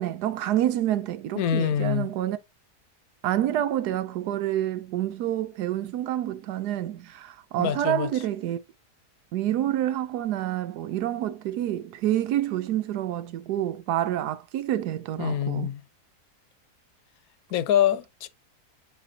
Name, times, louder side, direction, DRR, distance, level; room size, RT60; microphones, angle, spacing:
voice 1, 0.0-2.4 3.2-8.6 9.3-15.7, right 12 dB, 85° right, 1.2 m, -28 dB
voice 2, 1.3-2.1 7.6-8.1 15.2-15.8 17.5-18.3, left 10 dB, 70° left, 1.1 m, -25 dB
8.8 x 4.2 x 2.7 m
omnidirectional pair, 1.7 m